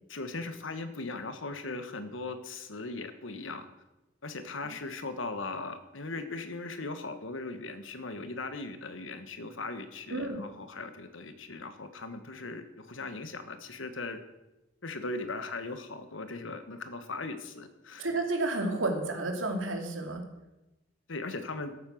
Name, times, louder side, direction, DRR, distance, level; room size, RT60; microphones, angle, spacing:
voice 1, 0.1-3.6 4.2-14.2 14.8-18.1 21.1-21.7, left 3 dB, 75° left, 9 dB, 1.4 m, -39 dB
voice 2, 18.0-20.2, right 2 dB, 85° right, 3 dB, 2.5 m, -31 dB
13.5 x 8.9 x 6.4 m, 1.0 s
head